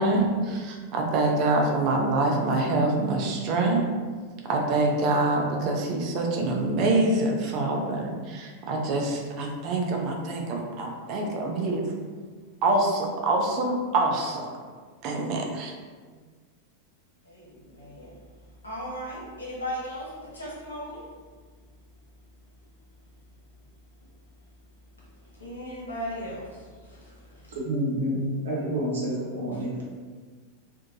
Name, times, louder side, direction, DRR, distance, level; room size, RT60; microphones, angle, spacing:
voice 1, 0.0-3.8 4.5-11.8 12.6-14.4 15.0-15.7, right 2 dB, 40° right, 0 dB, 0.5 m, -25 dB
voice 2, 17.2-18.2 18.6-21.1 25.0-25.1 25.3-27.6, equal, 75° left, -5 dB, 0.8 m, -37 dB
voice 3, 27.5-28.2 28.4-29.8, equal, 65° right, -5 dB, 0.9 m, -28 dB
2.9 x 2.1 x 2.6 m, 1.5 s
figure-of-eight pair, 90°, 0 cm